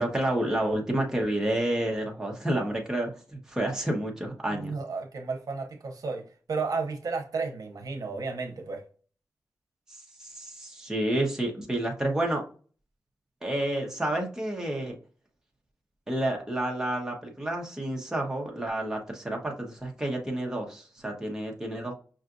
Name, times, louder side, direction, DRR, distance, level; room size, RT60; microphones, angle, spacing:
voice 1, 0.0-4.7 10.2-12.4 13.4-14.9 16.1-21.9, right 1 dB, 10° right, 0 dB, 0.9 m, -29 dB
voice 2, 4.5-8.8, right 4 dB, 70° right, 3 dB, 0.8 m, -33 dB
5.6 x 2.4 x 2.5 m, 0.39 s
wide cardioid pair, 140°, 6 cm